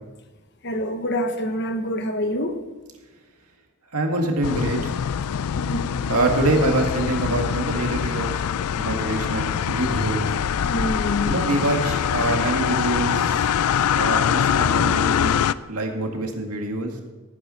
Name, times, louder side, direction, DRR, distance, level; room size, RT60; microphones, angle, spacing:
voice 1, 0.6-2.6 5.6-5.9 10.6-11.3, left 1 dB, 50° left, 7 dB, 1.1 m, -26 dB
voice 2, 3.9-4.9 6.1-8.4 8.7-10.3 11.3-13.4 13.9-15.4 15.7-17.0, right 2 dB, 85° right, 3 dB, 2.0 m, -25 dB
sound 1, 4.4-15.5, left 8 dB, 85° left, 0.4 m, -23 dB
17.5 x 9.3 x 4.4 m, 1.2 s
head